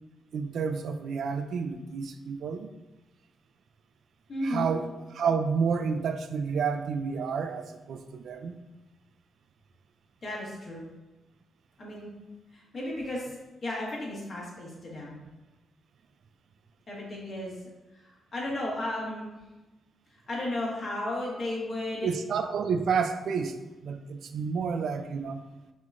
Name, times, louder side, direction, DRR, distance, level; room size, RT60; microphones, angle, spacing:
voice 1, 0.3-2.7 4.4-4.9 5.1-8.6 22.0-25.4, right 6 dB, 70° right, 8 dB, 0.3 m, -30 dB
voice 2, 4.3-4.7 10.2-10.8 11.8-12.1 12.5-13.3 13.6-15.2 16.9-17.5 18.0-19.3 20.3-22.1, left 1 dB, 45° left, -4 dB, 1.5 m, -34 dB
5.7 x 3.1 x 2.4 m, 1.1 s
cardioid pair, 105°, 0 cm